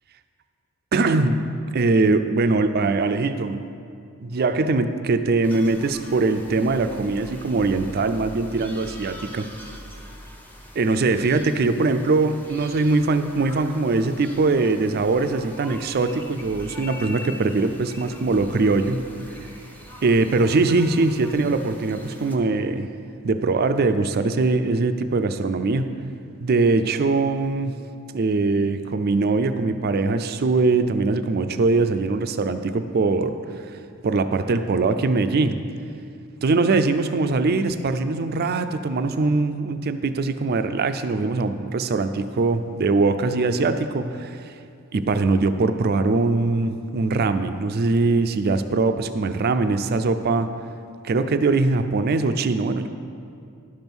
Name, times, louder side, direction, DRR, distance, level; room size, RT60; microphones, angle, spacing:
voice 1, 0.9-1.4 1.7-3.6 4.2-9.5 10.8-19.0 20.0-22.9 23.2-25.9 26.4-27.7 28.1-33.3 33.7-33.8 34.0-35.6 36.4-44.5 44.9-50.5 51.0-52.9, right 3 dB, 45° right, 10 dB, 0.4 m, -22 dB
sound 1, 5.4-22.4, left 1 dB, 10° left, 0.7 m, -43 dB
11.5 x 5.4 x 6.1 m, 2.4 s
head